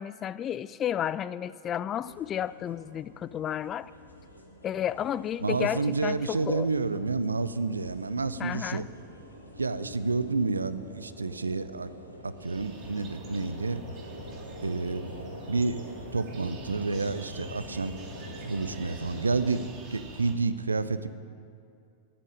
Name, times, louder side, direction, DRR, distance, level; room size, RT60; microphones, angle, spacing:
voice 1, 0.0-3.9 4.6-6.7 8.4-8.9, left 10 dB, 30° left, 17 dB, 0.3 m, -32 dB
sound 1, 2.0-19.7, equal, 85° left, 1.3 m, -46 dB
voice 2, 5.4-8.8 9.6-11.9 12.2-13.8 14.6-15.1 15.5-15.8 16.1-18.1 18.4-19.6 19.9-21.1, right 3 dB, 75° right, 14 dB, 0.5 m, -29 dB
sound 2, 12.4-20.3, right 1 dB, 35° right, 2.3 m, -45 dB
9.9 x 8.5 x 9.9 m, 2.4 s
figure-of-eight pair, 90°, 0 cm